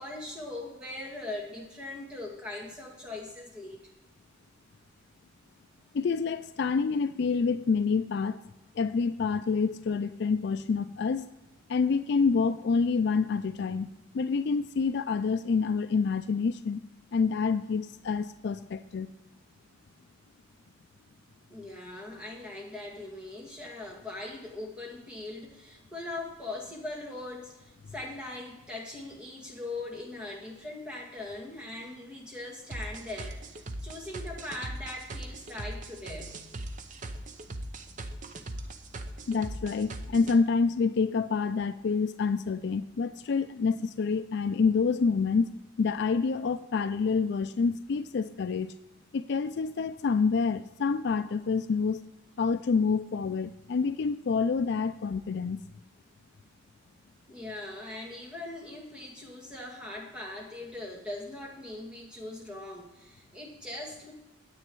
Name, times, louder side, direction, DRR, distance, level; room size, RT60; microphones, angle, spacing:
voice 1, 0.0-3.9 21.5-36.4 57.3-64.1, left 2 dB, 5° right, -2 dB, 2.1 m, -40 dB
voice 2, 5.9-8.4 8.8-11.3 11.7-13.9 14.1-16.8 17.1-19.1 39.3-45.5 45.8-48.7 49.1-52.0 52.4-55.6, left 5 dB, 55° left, 12 dB, 0.4 m, -27 dB
sound 1, 32.7-40.4, right 2 dB, 40° right, 0.7 m, -39 dB
9.9 x 8.3 x 4.6 m, 1.0 s
head